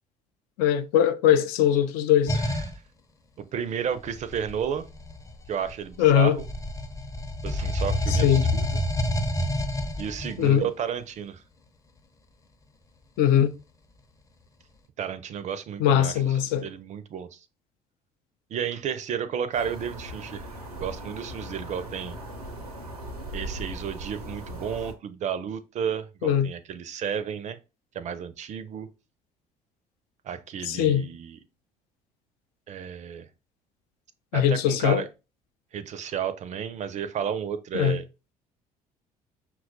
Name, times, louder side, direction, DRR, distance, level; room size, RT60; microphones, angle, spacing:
voice 1, 0.6-2.4 6.0-6.4 8.1-8.5 10.4-10.7 13.2-13.5 15.8-16.7 26.2-26.5 30.6-31.1 34.3-35.0 37.7-38.0, left 10 dB, 55° left, 0.4 m, -21 dB
sound 1, 2.3-2.8 4.1-6.0 6.4-10.5, left 1 dB, 15° left, 0.6 m, -28 dB
voice 2, 3.4-4.9 5.5-6.4 7.4-8.8 10.0-11.4 15.0-16.1 16.6-17.4 18.5-20.5 20.7-22.2 23.3-27.6 27.9-28.9 30.2-31.4 32.7-33.3 34.3-35.1 35.7-38.0, right 8 dB, 40° right, 0.5 m, -32 dB
sound 2, 19.5-24.9, right 1 dB, 85° right, 0.6 m, -39 dB
5.6 x 2.3 x 2.6 m
figure-of-eight pair, 55°, 19 cm